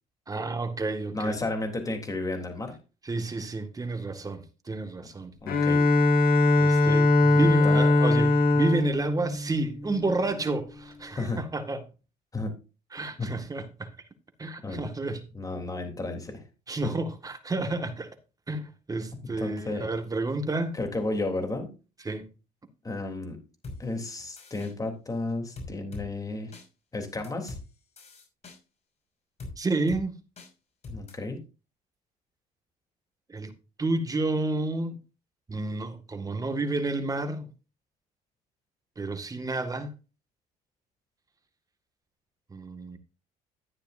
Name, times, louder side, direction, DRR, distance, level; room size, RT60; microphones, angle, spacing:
voice 1, 0.3-1.4 3.0-5.3 6.6-11.8 12.9-14.0 14.4-15.3 16.7-18.1 18.5-20.8 22.0-22.3 29.6-30.2 33.3-33.5 33.8-35.0 35.5-37.5 39.0-39.9 42.5-43.0, right 2 dB, 20° right, 2.0 m, -30 dB
voice 2, 1.1-2.7 5.4-5.8 6.4-6.5 7.4-7.8 11.2-11.4 12.3-12.5 13.2-13.3 14.6-14.8 15.3-16.4 16.8-16.9 19.4-19.8 20.8-21.7 22.8-23.4 23.8-26.5 26.9-27.6 30.9-31.4, left 2 dB, 20° left, 3.4 m, -32 dB
Bowed string instrument, 5.5-10.2, left 2 dB, 60° left, 2.4 m, -21 dB
sound 1, 23.6-23.8 24.4-24.7 25.6-26.1 26.5-26.7 27.2-27.6 28.0-28.6 29.4-29.5 29.9-30.0 30.4-30.5 30.8-31.1, left 2 dB, 40° left, 5.8 m, -41 dB
12.5 x 9.9 x 2.7 m
cardioid pair, 110°, 17 cm